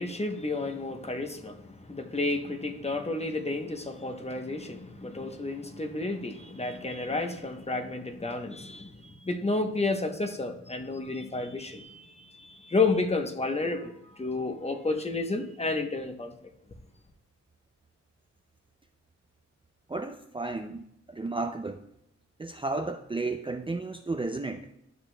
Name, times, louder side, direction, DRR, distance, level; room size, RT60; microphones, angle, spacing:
voice 1, 0.0-16.3, left 3 dB, 20° left, 0.9 m, -31 dB
voice 2, 19.9-21.9 22.4-24.7, right 3 dB, 20° right, 0.4 m, -33 dB
12.0 x 6.0 x 2.2 m
wide cardioid pair, 80°, 29 cm